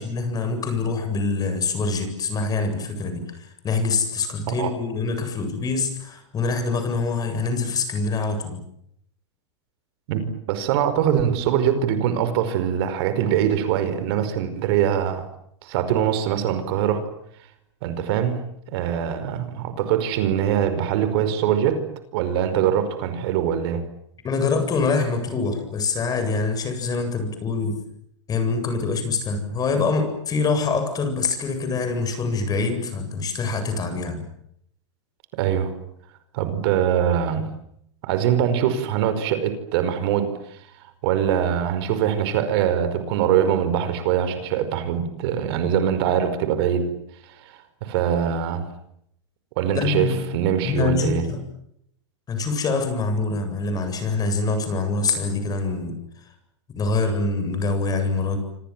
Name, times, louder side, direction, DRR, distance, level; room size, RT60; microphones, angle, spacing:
voice 1, 0.0-8.6 24.2-27.8 28.3-34.2 49.7-50.2 50.6-51.4 52.3-56.0 56.7-58.4, left 4 dB, 25° left, 8 dB, 8.0 m, -25 dB
voice 2, 10.1-15.3 15.6-17.0 17.8-21.8 22.1-23.8 35.3-35.8 36.3-37.5 38.0-40.6 41.0-47.0 47.2-48.7 49.6-51.2, right 9 dB, 55° right, 11 dB, 5.1 m, -23 dB
28.0 x 26.5 x 7.6 m, 0.74 s
hypercardioid pair, 120°, 15 cm